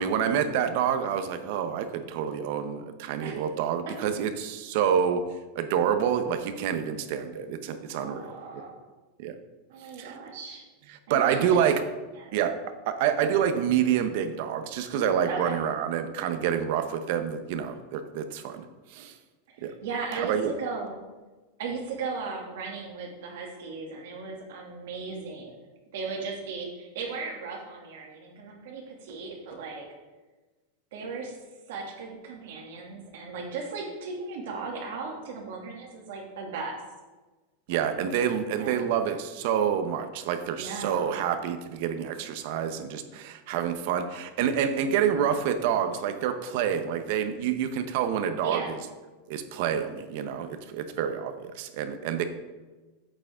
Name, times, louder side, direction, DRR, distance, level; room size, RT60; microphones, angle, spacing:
voice 1, 0.0-5.2 5.6-8.6 9.2-9.3 10.0-10.1 11.1-11.8 12.3-12.5 12.9-18.6 18.9-19.1 19.6-19.7 20.2-20.5 37.7-48.6 49.3-52.2, right 8 dB, 60° right, 9 dB, 0.8 m, -27 dB
voice 2, 8.0-8.7 9.7-10.6 11.1-11.7 12.2-12.4 15.3-15.6 19.5-21.0 21.6-25.5 25.9-29.8 30.9-31.4 31.7-36.8 37.7-37.9 38.6-38.9 40.6-41.2 48.4-48.8, right 4 dB, 75° right, 0 dB, 2.3 m, -36 dB
8.7 x 7.5 x 3.6 m, 1.2 s
supercardioid pair, 140°, 0 cm